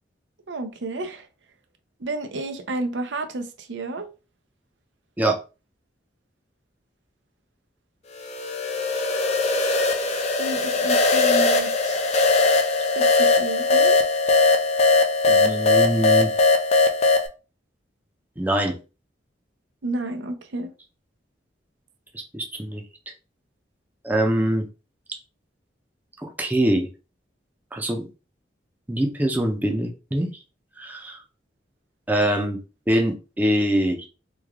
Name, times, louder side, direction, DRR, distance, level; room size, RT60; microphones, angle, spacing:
voice 1, 0.5-1.3 2.0-4.1 10.4-12.0 12.9-14.0 19.8-20.7, right 2 dB, 80° right, 0.6 m, -31 dB
sound 1, 8.2-17.3, left 3 dB, 35° left, 0.5 m, -20 dB
voice 2, 15.3-16.3 18.4-18.7 22.1-22.8 24.0-24.7 26.2-26.9 27.7-28.1 28.9-30.3 30.8-31.2 32.1-32.6 32.9-34.0, right 1 dB, 10° right, 0.6 m, -23 dB
3.2 x 2.3 x 3.5 m
head